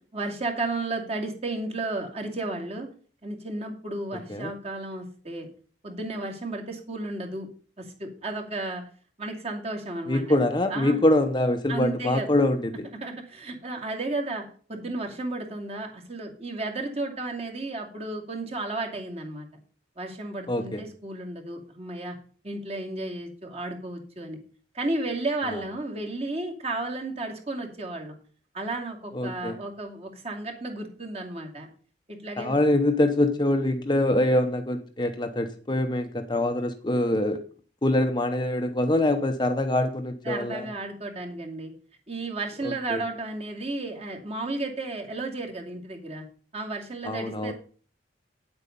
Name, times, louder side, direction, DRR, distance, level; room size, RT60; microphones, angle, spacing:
voice 1, 0.1-2.9 3.2-5.5 5.8-7.5 7.8-8.8 9.2-10.4 10.7-11.0 11.7-12.3 13.0-19.5 20.0-22.1 22.4-24.4 24.7-28.2 28.5-31.7 32.1-32.6 40.2-41.7 42.1-46.2 46.5-47.5, right 2 dB, 35° right, 1 dB, 2.6 m, -33 dB
voice 2, 10.1-12.9 20.5-20.8 25.5-25.6 29.1-29.6 32.4-37.4 37.8-40.7 42.6-43.0 47.0-47.5, left 1 dB, 25° left, 6 dB, 0.8 m, -24 dB
9.7 x 8.0 x 5.3 m, 0.41 s
head